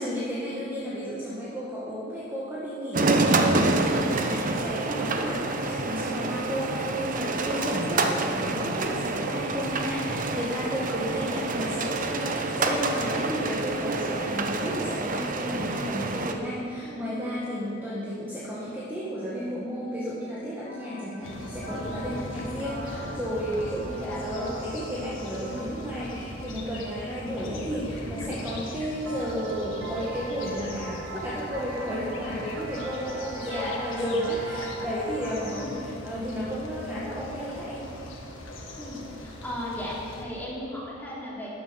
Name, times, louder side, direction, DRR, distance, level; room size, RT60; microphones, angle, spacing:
voice 1, 0.0-37.9, equal, 10° right, -8 dB, 1.7 m, -32 dB
sound 1, 2.9-16.3, right 3 dB, 45° right, 0.9 m, -27 dB
voice 2, 16.8-17.2 21.6-22.0 24.0-24.2 33.5-33.9 35.5-35.9 38.8-41.5, left 1 dB, 10° left, -7 dB, 3.3 m, -36 dB
sound 2, 20.6-28.1 29.1-35.7, right 1 dB, 65° right, 1.8 m, -41 dB
sound 3, 21.2-40.2, left 1 dB, 70° left, 1.8 m, -40 dB
13.0 x 10.0 x 5.9 m, 2.6 s
head